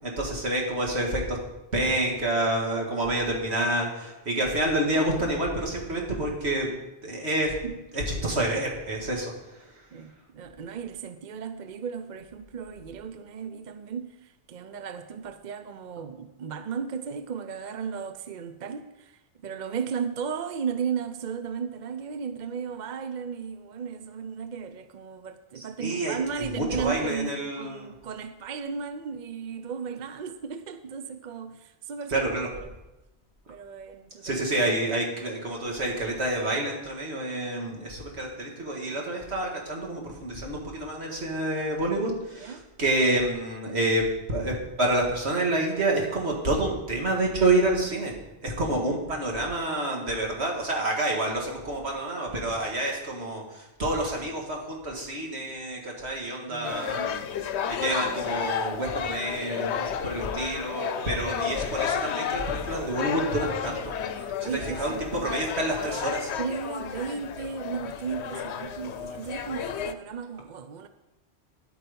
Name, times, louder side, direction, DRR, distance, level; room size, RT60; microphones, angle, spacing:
voice 1, 0.0-1.4 1.7-6.7 7.0-7.6 7.9-9.7 25.6-27.9 32.1-32.5 34.2-48.2 48.4-57.2 57.7-63.9 64.4-66.3, right 1 dB, 75° right, 2.5 m, -28 dB
voice 2, 9.9-32.3 32.6-32.7 33.5-34.4 42.3-42.6 48.6-49.0 52.3-52.6 56.5-57.2 60.3-60.6 64.2-65.1 66.4-70.9, right 6 dB, 50° right, 0.7 m, -35 dB
sound 1, 56.6-69.9, left 8 dB, 80° left, 0.9 m, -32 dB
11.0 x 8.7 x 5.3 m
omnidirectional pair, 1.1 m